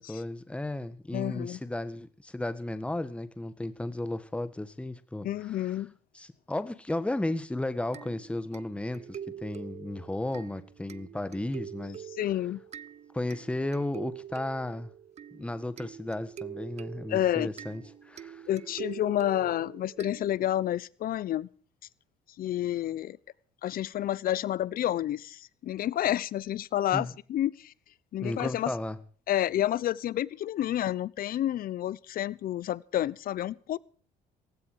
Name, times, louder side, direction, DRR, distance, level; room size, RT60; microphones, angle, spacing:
voice 1, 0.0-5.7 6.1-12.0 13.1-14.9 15.3-18.5 26.9-27.1 28.2-29.0, left 1 dB, 5° left, 1.5 m, -34 dB
voice 2, 1.1-1.6 5.2-5.9 12.2-12.6 17.1-17.5 18.5-21.5 22.4-23.2 23.6-27.7 28.1-28.7 29.3-33.8, left 12 dB, 60° left, 0.9 m, -29 dB
sound 1, 7.9-20.7, right 9 dB, 40° right, 0.7 m, -45 dB
17.5 x 15.5 x 4.8 m
cardioid pair, 110°, 17 cm